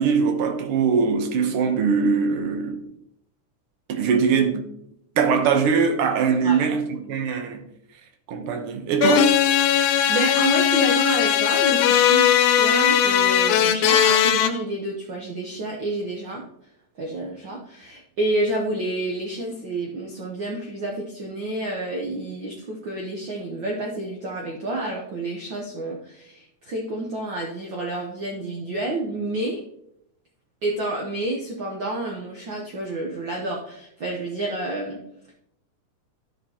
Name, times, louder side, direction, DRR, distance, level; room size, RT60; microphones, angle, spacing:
voice 1, 0.0-2.8 3.9-4.7 5.2-7.6 8.3-9.4, right 6 dB, 65° right, 1.4 m, -21 dB
sound 1, 9.0-14.5, left 10 dB, 80° left, 2.0 m, -19 dB
voice 2, 10.1-16.4 17.0-29.6 30.6-35.0, right 2 dB, 85° right, 1.0 m, -29 dB
13.0 x 5.8 x 2.9 m
omnidirectional pair, 3.5 m